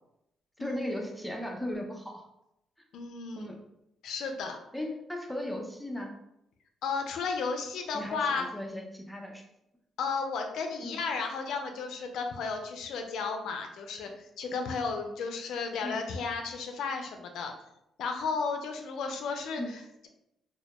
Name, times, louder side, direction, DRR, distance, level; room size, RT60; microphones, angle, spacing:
voice 1, 0.6-2.2 3.4-3.6 4.7-6.1 7.9-9.4 10.8-11.0 15.8-16.0 19.6-19.7, left 1 dB, 5° left, 1 dB, 0.4 m, -36 dB
voice 2, 2.9-3.5 4.0-4.6 6.8-8.5 10.0-17.5 18.0-20.1, left 5 dB, 80° left, 4 dB, 0.3 m, -33 dB
2.1 x 2.0 x 2.8 m, 0.83 s
cardioid pair, 90°, 0 cm